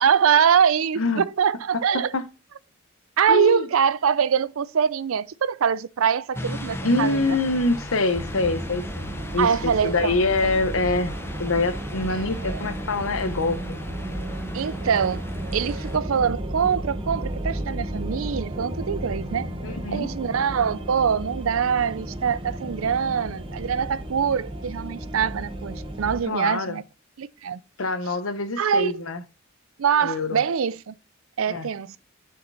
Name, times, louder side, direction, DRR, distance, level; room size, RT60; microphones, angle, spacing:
voice 1, 0.0-2.1 3.2-7.4 9.4-10.2 10.4-10.5 12.1-12.6 14.5-15.2 15.5-19.5 19.9-26.8 27.2-27.6 28.6-29.0 29.8-30.9 31.4-32.0, right 7 dB, 75° right, 0.5 m, -23 dB
voice 2, 1.9-2.3 3.3-3.7 6.8-11.1 11.4-13.8 19.6-20.1 26.3-26.8 27.8-29.2 30.0-30.4 31.5-31.7, left 2 dB, 75° left, 1.0 m, -25 dB
sound 1, 6.3-16.0, left 1 dB, 10° left, 0.8 m, -38 dB
sound 2, 8.1-26.2, right 1 dB, 25° right, 1.1 m, -33 dB
6.5 x 5.8 x 3.9 m
head